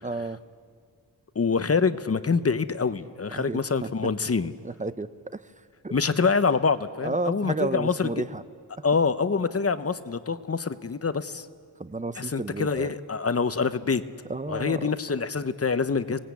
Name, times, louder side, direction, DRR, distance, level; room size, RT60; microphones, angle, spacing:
voice 1, 0.0-0.4 3.3-3.9 4.6-5.1 5.8-6.0 7.0-8.4 11.8-12.9 14.3-14.8, right 2 dB, 20° right, 13 dB, 0.7 m, -31 dB
voice 2, 1.3-4.5 5.9-8.1 8.8-11.5 12.2-14.0 14.5-16.2, left 5 dB, 35° left, 12 dB, 0.8 m, -25 dB
27.0 x 19.0 x 8.3 m, 2.2 s
wide cardioid pair, 105°, 40 cm